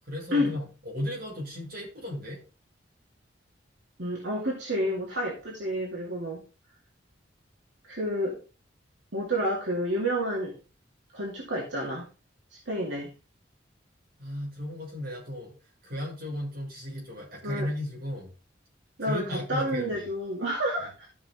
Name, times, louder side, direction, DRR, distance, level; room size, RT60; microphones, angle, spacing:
voice 1, 0.1-2.4 14.2-15.5 15.8-18.3 19.1-20.0, left 1 dB, 50° right, -3 dB, 5.9 m, -35 dB
voice 2, 4.0-6.4 7.8-8.4 9.1-10.6 11.1-12.1 12.5-13.1 17.4-17.7 19.0-21.1, equal, 70° right, -3 dB, 2.4 m, -30 dB
14.0 x 6.0 x 3.6 m, 0.32 s
head